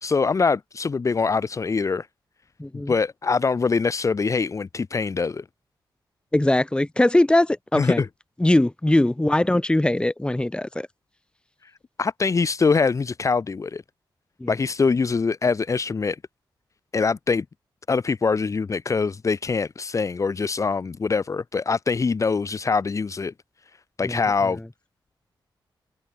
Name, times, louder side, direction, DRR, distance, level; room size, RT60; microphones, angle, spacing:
voice 1, 0.0-2.1 2.7-5.4 7.7-8.1 12.0-13.8 14.5-16.2 16.9-17.4 17.9-23.3 24.0-24.6, left 4 dB, 40° left, 1.8 m, -23 dB
voice 2, 2.6-2.9 6.3-8.0 8.4-10.9 14.4-14.5 24.0-24.2, left 1 dB, 10° left, 3.8 m, -21 dB
wide cardioid pair, 125°, 8 cm